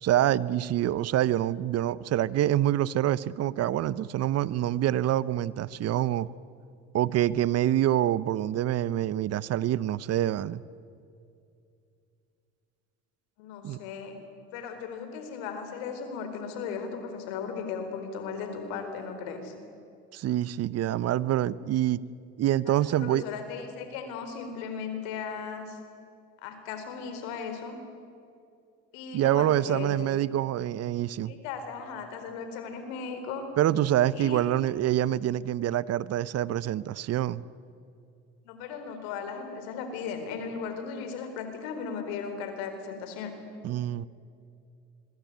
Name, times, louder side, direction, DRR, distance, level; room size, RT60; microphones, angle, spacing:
voice 1, 0.0-6.3 6.9-10.6 13.6-13.8 20.1-22.0 22.4-23.2 29.1-31.3 33.6-37.4 43.6-44.1, right 12 dB, 55° right, 19 dB, 0.9 m, -26 dB
voice 2, 13.4-14.2 14.5-19.5 22.8-25.8 26.4-27.8 28.9-30.0 31.2-33.5 34.1-34.5 38.4-43.3, left 6 dB, 85° left, 7 dB, 4.3 m, -37 dB
26.0 x 22.5 x 9.5 m, 2.5 s
supercardioid pair, 80°, 30 cm